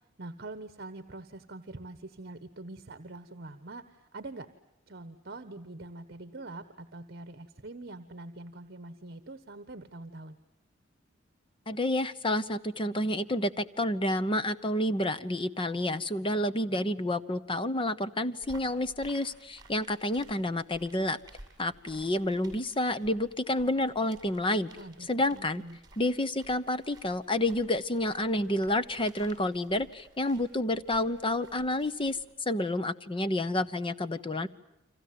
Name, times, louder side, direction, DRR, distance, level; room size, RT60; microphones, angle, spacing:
voice 1, 0.2-4.5 4.9-10.4 24.8-25.8, right 2 dB, 55° right, 11 dB, 1.3 m, -44 dB
voice 2, 11.7-21.2 21.6-24.7 25.1-25.6 26.0-34.5, left 1 dB, 25° left, 13 dB, 1.0 m, -29 dB
sound 1, 18.4-32.3, right 2 dB, 20° right, 7.6 m, -56 dB
30.0 x 25.5 x 7.7 m, 0.84 s
head